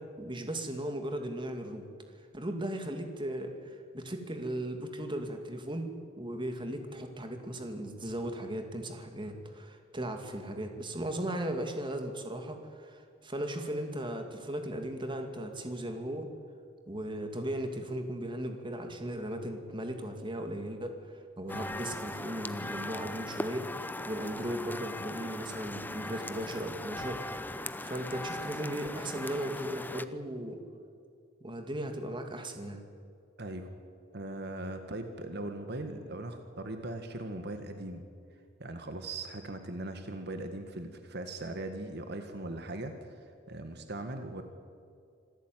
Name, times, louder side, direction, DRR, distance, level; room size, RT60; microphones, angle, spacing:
voice 1, 0.0-1.9 2.3-3.5 3.9-5.9 6.2-16.3 16.9-21.0 21.4-23.7 24.1-27.4 27.8-30.6 31.4-32.8, right 1 dB, 25° right, 5 dB, 2.4 m, -37 dB
sound 1, 21.5-30.0, left 1 dB, 10° left, 0.7 m, -39 dB
voice 2, 33.4-33.7 34.1-38.0 38.6-44.4, right 2 dB, 60° right, 7 dB, 1.8 m, -39 dB
26.0 x 15.0 x 9.4 m, 2.4 s
head